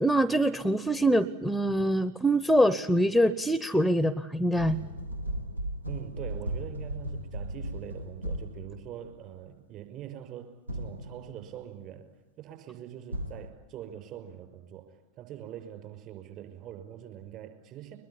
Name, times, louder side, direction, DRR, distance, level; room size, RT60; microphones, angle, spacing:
voice 1, 0.0-4.8, right 1 dB, ahead, 17 dB, 0.8 m, -24 dB
sound 1, 4.6-9.2 10.7-11.5 13.1-13.5, right 1 dB, 80° right, 1.1 m, -36 dB
voice 2, 5.9-12.1 12.4-18.0, right 11 dB, 40° right, 7 dB, 5.5 m, -43 dB
23.0 x 21.5 x 9.9 m, 1.1 s
figure-of-eight pair, 90°, 0 cm